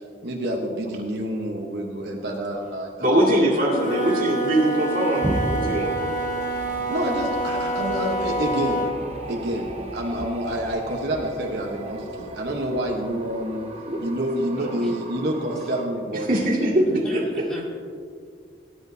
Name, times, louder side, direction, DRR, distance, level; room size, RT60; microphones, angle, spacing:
voice 1, 0.2-2.9 6.9-8.9 9.3-13.6 14.0-16.3, right 1 dB, 65° right, 0 dB, 1.1 m, -28 dB
voice 2, 1.3-1.7 9.2-9.3 14.8-14.9 15.2-15.7 17.0-17.8, equal, 5° left, -6 dB, 3.3 m, -40 dB
voice 3, 3.0-6.4 13.8-14.3 14.6-14.7 16.1-17.2, right 1 dB, 50° right, -3 dB, 2.2 m, -22 dB
Wind instrument woodwind instrument, 3.6-9.0, right 2 dB, 45° left, 1.4 m, -27 dB
sound 1, 5.0-15.9, right 1 dB, 35° right, 1.1 m, -39 dB
Thunder, 5.2-14.6, equal, 10° right, 0.6 m, -36 dB
18.0 x 10.5 x 2.7 m, 2.2 s
head